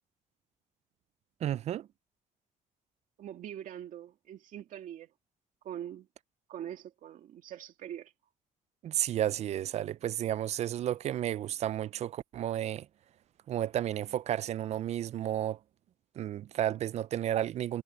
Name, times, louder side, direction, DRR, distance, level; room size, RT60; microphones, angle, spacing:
voice 1, 1.4-1.9 8.8-12.9 13.5-15.6 16.2-17.8, right 11 dB, 50° right, 0.4 m, -32 dB
voice 2, 3.2-5.1 5.6-6.1 6.5-8.1, right 10 dB, 70° right, 2.2 m, -43 dB
cardioid pair, 140°, 14 cm